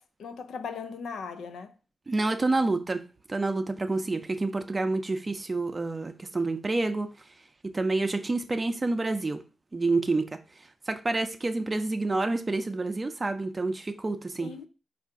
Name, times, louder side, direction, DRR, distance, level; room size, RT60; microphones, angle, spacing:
voice 1, 0.0-1.7 4.1-4.2 14.4-14.7, left 5 dB, 80° left, 0.4 m, -38 dB
voice 2, 2.1-3.0 3.3-7.1 7.6-9.4 9.7-10.3 10.9-14.5, right 2 dB, 35° right, 0.5 m, -28 dB
4.4 x 2.5 x 3.6 m
supercardioid pair, 50°, 0 cm